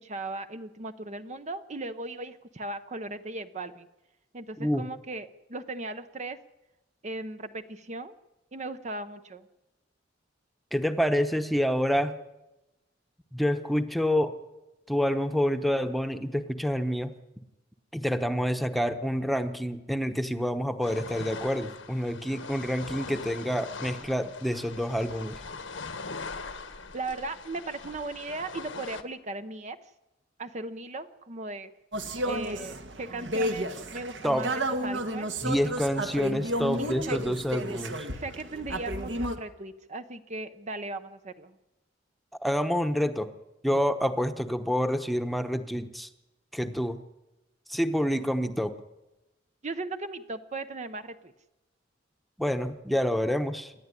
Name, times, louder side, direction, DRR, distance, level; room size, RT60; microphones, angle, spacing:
voice 1, 0.0-3.9 4.3-6.4 7.0-8.1 8.5-9.5 26.9-29.8 30.4-31.7 32.2-34.5 34.8-35.6 36.8-37.2 38.1-41.5 49.6-51.3, right 2 dB, 40° right, 10 dB, 0.8 m, -37 dB
voice 2, 10.7-12.2 13.3-14.3 14.9-17.1 17.9-25.4 34.2-34.5 35.4-38.1 42.4-43.3 43.6-46.1 46.5-47.0 47.7-48.7 52.4-53.7, equal, ahead, 7 dB, 1.0 m, -28 dB
sound 1, 20.8-29.0, left 4 dB, 90° left, 1.6 m, -41 dB
sound 2, 31.9-39.3, right 1 dB, 65° right, 1.8 m, -32 dB
27.5 x 11.0 x 9.8 m, 0.99 s
head